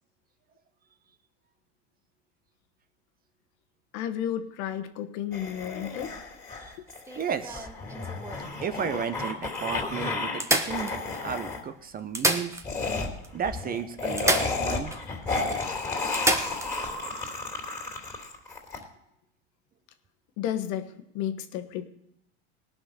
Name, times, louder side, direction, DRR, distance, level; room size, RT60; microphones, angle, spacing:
voice 1, 3.9-6.1 6.8-6.9 20.4-21.9, left 10 dB, 55° left, 9 dB, 1.3 m, -32 dB
sound 1, 5.3-10.4 10.7-11.6 12.6-18.8, left 3 dB, 10° left, 3.1 m, -32 dB
sound 2, 6.9-8.5 9.2-9.3 9.5-9.6 10.4-11.4 12.0-13.0 13.2-13.3 14.2-15.0 15.4-15.5 16.1-16.7 18.7-18.8, right 2 dB, 10° right, 1.2 m, -29 dB
voice 2, 7.2-7.7 8.6-12.6 13.3-14.9, right 7 dB, 25° right, 11 dB, 0.9 m, -33 dB
18.5 x 6.1 x 6.5 m, 0.79 s
supercardioid pair, 115°, 34 cm